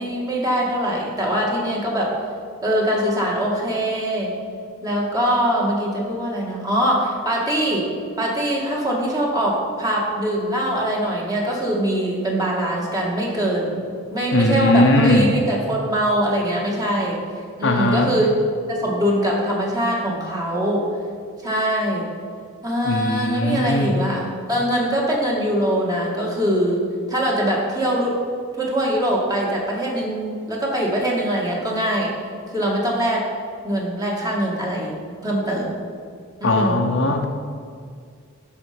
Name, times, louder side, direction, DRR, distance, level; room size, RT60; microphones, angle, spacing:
voice 1, 0.0-2.1 2.6-4.3 4.8-7.9 8.2-13.8 14.1-17.2 17.6-18.3 18.7-20.9 21.4-22.1 22.6-26.8 27.1-28.2 28.6-32.1 32.5-33.2 33.6-35.0 35.2-35.8 36.4-36.9, equal, 20° right, -3 dB, 2.0 m, -22 dB
voice 2, 14.3-15.3 17.6-18.1 22.8-24.0 36.4-37.3, left 1 dB, 60° left, 3 dB, 1.0 m, -19 dB
13.0 x 5.5 x 5.2 m, 2.1 s
head